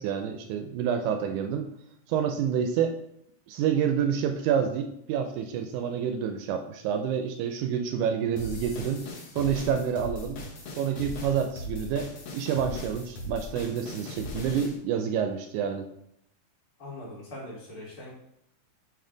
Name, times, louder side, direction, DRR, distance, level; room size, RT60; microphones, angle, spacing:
voice 1, 0.0-1.7 2.1-3.0 3.5-9.0 9.3-10.4 10.8-15.9, right 8 dB, 80° right, 6 dB, 1.9 m, -28 dB
sound 1, 8.4-14.7, left 2 dB, 65° left, 1.3 m, -38 dB
voice 2, 16.8-18.1, left 1 dB, 45° left, -7 dB, 2.8 m, -41 dB
8.7 x 3.1 x 3.8 m, 0.77 s
omnidirectional pair, 3.7 m